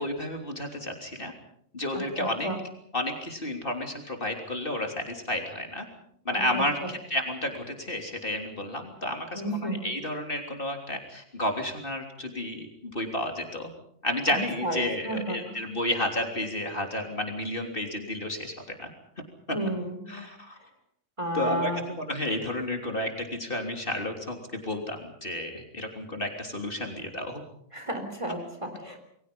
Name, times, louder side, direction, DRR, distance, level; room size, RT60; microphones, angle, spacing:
voice 1, 0.0-1.3 1.7-2.5 2.9-5.9 6.3-13.7 14.0-18.9 20.1-20.6 21.3-21.7 22.0-27.4, left 1 dB, 40° left, 3 dB, 3.6 m, -31 dB
voice 2, 1.9-2.6 6.3-6.9 9.3-9.8 14.3-15.4 19.5-20.0 21.2-21.8 27.7-29.1, right 1 dB, 25° right, 6 dB, 3.8 m, -32 dB
29.0 x 22.5 x 5.5 m, 0.69 s
omnidirectional pair, 1.4 m